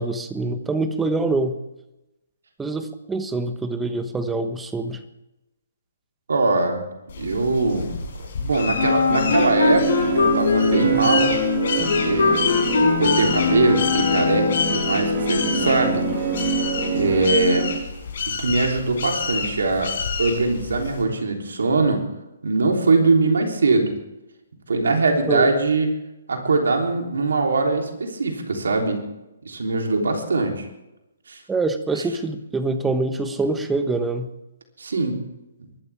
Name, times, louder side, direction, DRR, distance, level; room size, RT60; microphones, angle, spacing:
voice 1, 0.0-1.6 2.6-5.0 25.3-25.5 31.5-34.3, right 3 dB, 10° right, 9 dB, 1.2 m, -25 dB
voice 2, 6.3-6.9 7.2-8.0 8.4-9.9 10.1-11.3 11.8-12.4 13.0-16.0 16.9-17.7 18.4-19.9 20.2-22.0 22.4-23.9 24.7-25.9 26.3-29.0 29.4-30.7 31.3-31.4 34.8-35.2, right 3 dB, 80° right, 2 dB, 3.4 m, -21 dB
sound 1, 7.1-21.0, left 5 dB, 60° left, 5.4 m, -29 dB
Wind instrument woodwind instrument, 8.7-14.8, left 4 dB, 75° left, 7.1 m, -22 dB
sound 2, 9.1-17.7, right 1 dB, 25° right, 5.5 m, -25 dB
23.5 x 12.5 x 3.6 m, 0.93 s
hypercardioid pair, 145°, 0 cm